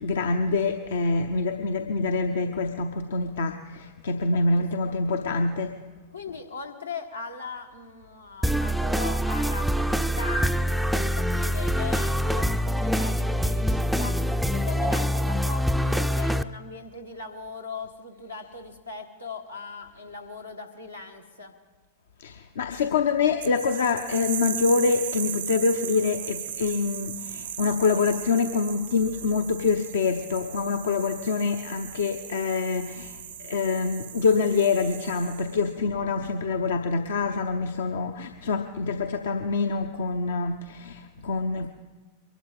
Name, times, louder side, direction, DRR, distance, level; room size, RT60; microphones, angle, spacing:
voice 1, 0.0-5.8 22.2-41.7, left 4 dB, 65° left, 5 dB, 0.7 m, -26 dB
voice 2, 4.3-4.9 6.1-14.2 14.5-21.5, left 4 dB, 85° left, 1 dB, 1.6 m, -39 dB
sound 1, 8.4-16.4, equal, ahead, 0.4 m, -25 dB
sound 2, 23.4-35.7, right 9 dB, 65° right, 0.6 m, -37 dB
23.0 x 12.0 x 4.0 m, 1.3 s
figure-of-eight pair, 90°, 0 cm